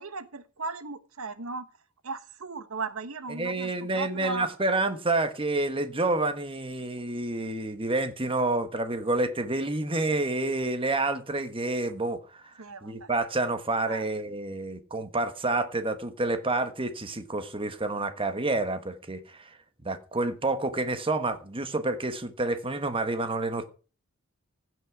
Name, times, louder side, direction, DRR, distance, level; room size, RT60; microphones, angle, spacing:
voice 1, 0.0-1.7 2.0-4.5 12.6-13.1 13.9-14.1, right 3 dB, 75° right, 1.1 m, -37 dB
voice 2, 3.3-12.5 12.8-19.6 19.8-23.7, right 2 dB, 25° right, 1.3 m, -29 dB
15.5 x 6.3 x 4.8 m
head